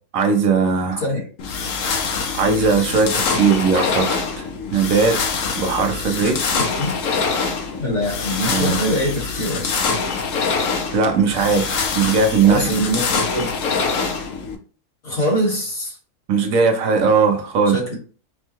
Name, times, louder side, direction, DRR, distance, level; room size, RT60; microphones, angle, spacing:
voice 1, 0.1-1.0 2.3-4.4 4.7-5.2 5.5-6.4 8.4-8.8 10.9-12.7 16.3-17.8, right 5 dB, 65° right, 5 dB, 1.1 m, -18 dB
sound 1, 1.4-14.6, left 5 dB, 65° left, 1.0 m, -24 dB
voice 2, 6.5-6.9 7.8-9.7 12.4-13.5 15.0-16.0 17.7-18.0, equal, 45° left, -4 dB, 2.0 m, -23 dB
5.3 x 2.3 x 2.8 m, 0.40 s
omnidirectional pair, 1.6 m